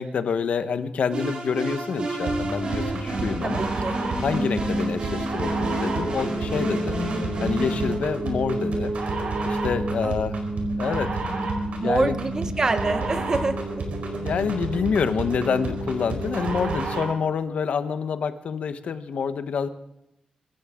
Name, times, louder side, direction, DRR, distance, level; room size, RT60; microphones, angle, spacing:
voice 1, 0.0-3.6 4.2-7.0 7.4-8.9 9.4-10.4 10.8-11.2 11.8-12.2 14.2-19.7, left 6 dB, 65° left, 10 dB, 1.2 m, -27 dB
sound 1, 1.1-7.9, right 1 dB, 45° right, 3.8 m, -31 dB
sound 2, 2.3-17.2, right 2 dB, 70° right, 4.6 m, -29 dB
voice 2, 3.4-3.9 10.0-10.1 11.8-13.8, right 3 dB, 25° right, 9 dB, 1.1 m, -26 dB
25.0 x 14.5 x 3.8 m, 0.84 s
wide cardioid pair, 180°, 2 cm